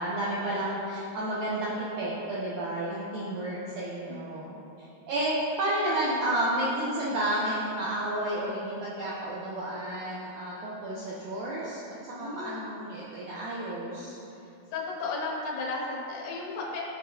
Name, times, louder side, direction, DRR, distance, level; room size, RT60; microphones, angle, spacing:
voice 1, 0.0-4.5 5.1-14.2, right 1 dB, 75° right, -7 dB, 1.8 m, -31 dB
voice 2, 4.1-4.6 12.2-12.7 13.9-16.8, left 3 dB, 80° left, -3 dB, 1.5 m, -35 dB
13.5 x 4.8 x 2.7 m, 2.8 s
omnidirectional pair, 4.6 m